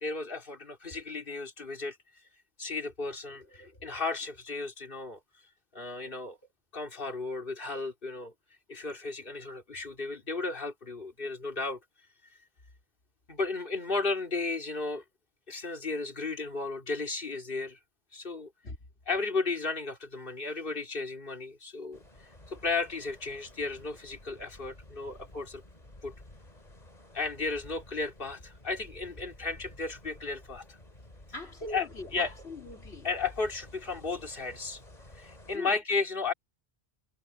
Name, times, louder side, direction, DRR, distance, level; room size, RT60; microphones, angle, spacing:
voice 1, 0.0-2.0 2.6-5.2 5.7-6.4 6.7-8.3 8.7-11.8 13.3-15.0 15.5-17.8 18.1-18.5 19.1-22.0 22.5-25.6 26.0-26.1 27.1-30.8 31.7-32.3 33.0-34.8 35.2-36.3, left 3 dB, 55° left, 3.3 m, -34 dB
sound 1, 21.9-35.6, left 1 dB, 40° left, 3.7 m, -52 dB
voice 2, 31.3-33.1 35.5-35.8, left 2 dB, 75° left, 3.2 m, -40 dB
omnidirectional pair, 1.1 m